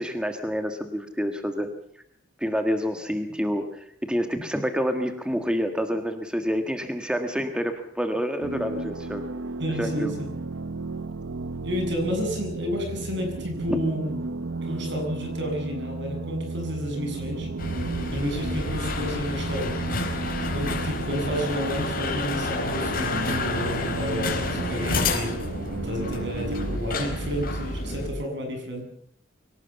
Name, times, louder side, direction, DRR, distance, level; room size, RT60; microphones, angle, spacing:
voice 1, 0.0-1.7 2.4-9.3 9.8-10.1 13.7-13.8, equal, 5° right, 6 dB, 1.6 m, -28 dB
sound 1, 8.4-26.8, right 3 dB, 85° right, 0.8 m, -34 dB
voice 2, 9.6-10.3 11.6-14.1 14.6-17.5 18.1-19.7 20.4-25.3 25.8-28.8, equal, 65° right, 4 dB, 7.3 m, -30 dB
sound 2, 17.6-28.1, left 2 dB, 50° left, 4.3 m, -29 dB
24.0 x 17.5 x 7.0 m, 0.68 s
head